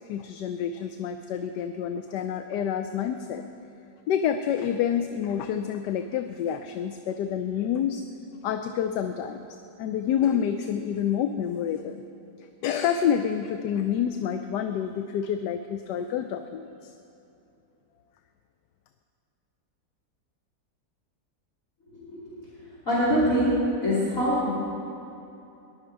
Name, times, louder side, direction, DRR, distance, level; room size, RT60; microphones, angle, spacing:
voice 1, 0.1-3.4 4.1-8.0 8.4-9.5 9.8-12.0 12.6-16.9, left 8 dB, 85° left, 7 dB, 1.2 m, -28 dB
voice 2, 22.9-23.5 23.8-24.5, equal, 50° left, -10 dB, 3.4 m, -23 dB
19.5 x 11.5 x 4.7 m, 2.9 s
omnidirectional pair, 1.8 m